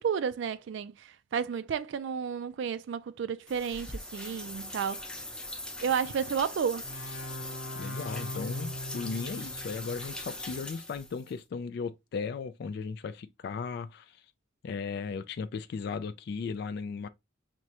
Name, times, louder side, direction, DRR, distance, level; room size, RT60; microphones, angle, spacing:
voice 1, 0.0-5.1 5.8-6.8, right 7 dB, 65° right, 0.3 m, -32 dB
sound 1, 3.5-11.3, left 1 dB, 5° left, 0.5 m, -41 dB
sound 2, 6.8-10.4, left 1 dB, 90° left, 0.7 m, -40 dB
voice 2, 7.7-14.3 14.6-17.1, left 5 dB, 55° left, 0.3 m, -36 dB
6.1 x 2.1 x 2.8 m
head